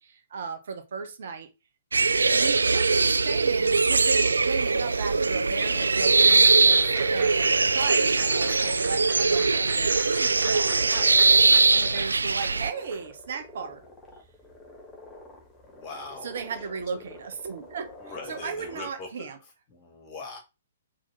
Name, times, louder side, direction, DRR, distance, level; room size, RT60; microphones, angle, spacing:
voice 1, 0.0-1.5 2.3-11.1 11.7-13.8 16.2-19.4, right 5 dB, 55° right, 1.1 m, -36 dB
sound 1, 1.9-12.7, right 4 dB, 75° right, 0.3 m, -21 dB
sound 2, 4.1-18.9, left 2 dB, 15° left, 1.7 m, -46 dB
Applause / Crowd, 5.8-13.0, right 4 dB, 30° right, 2.9 m, -43 dB
voice 2, 15.6-16.3 18.0-19.3 19.7-20.4, left 4 dB, 30° left, 2.6 m, -41 dB
4.7 x 4.1 x 5.5 m
figure-of-eight pair, 120°, 0 cm